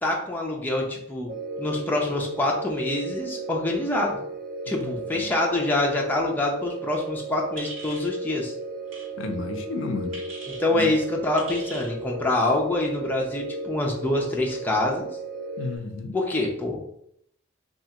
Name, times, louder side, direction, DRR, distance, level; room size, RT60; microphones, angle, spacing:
voice 1, 0.0-4.2 4.7-8.5 10.5-15.1 16.1-16.8, left 2 dB, 10° left, -1 dB, 0.5 m, -26 dB
sound 1, 1.3-15.8, right 2 dB, 50° right, 0.8 m, -35 dB
voice 2, 4.7-5.3 9.2-10.2 10.7-11.0 15.6-16.2, left 3 dB, 70° left, 6 dB, 0.4 m, -32 dB
sound 2, 7.6-8.1 8.9-9.1 10.1-10.6 11.4-11.9, right 3 dB, 70° right, 1.3 m, -40 dB
3.3 x 2.4 x 2.8 m, 0.71 s
head